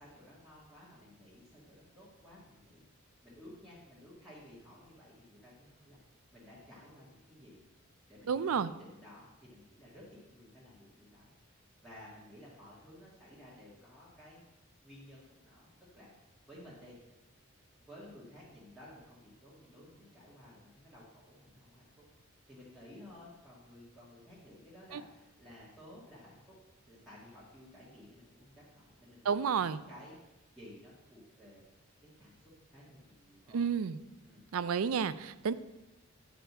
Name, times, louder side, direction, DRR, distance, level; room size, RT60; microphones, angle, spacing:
voice 1, 0.0-2.8 3.2-6.0 6.3-7.6 8.1-14.4 14.8-16.1 16.5-17.0 17.9-22.0 22.5-26.6 26.9-31.6 32.0-33.6 34.2-34.4, left 1 dB, ahead, -10 dB, 1.9 m, -55 dB
voice 2, 8.3-8.7 24.9-25.0 29.2-29.8 33.5-34.0 34.5-35.5, right 6 dB, 85° right, 15 dB, 0.4 m, -31 dB
8.9 x 5.1 x 6.1 m, 0.99 s
head